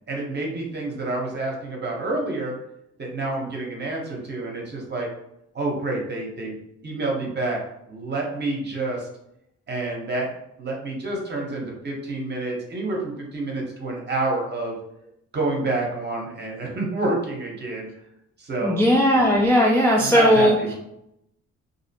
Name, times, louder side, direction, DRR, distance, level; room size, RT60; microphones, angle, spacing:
voice 1, 0.1-2.5 3.0-5.1 5.5-6.5 6.8-7.6 7.9-9.1 9.7-10.3 10.6-14.8 15.3-17.9 18.4-18.8 20.0-20.7, right 2 dB, 35° right, -1 dB, 0.8 m, -28 dB
voice 2, 18.6-20.7, equal, 10° left, -3 dB, 0.3 m, -18 dB
2.6 x 2.0 x 2.7 m, 0.79 s
cardioid pair, 90°, 30 cm